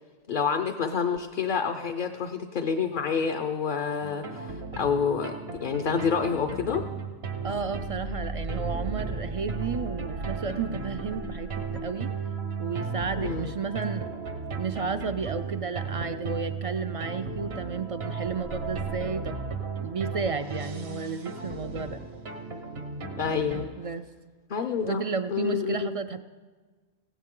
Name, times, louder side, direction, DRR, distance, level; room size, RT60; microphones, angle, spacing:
voice 1, 0.3-6.9 13.2-13.5 23.2-23.7 24.5-25.9, left 6 dB, 55° left, 6 dB, 0.8 m, -28 dB
sound 1, 4.0-23.7, right 4 dB, 80° right, 1.6 m, -35 dB
voice 2, 7.4-12.1 12.6-14.1 14.6-22.0 23.8-24.1 24.8-26.2, right 5 dB, 45° right, 10 dB, 0.4 m, -32 dB
18.5 x 16.5 x 3.7 m, 1.4 s
omnidirectional pair, 1.1 m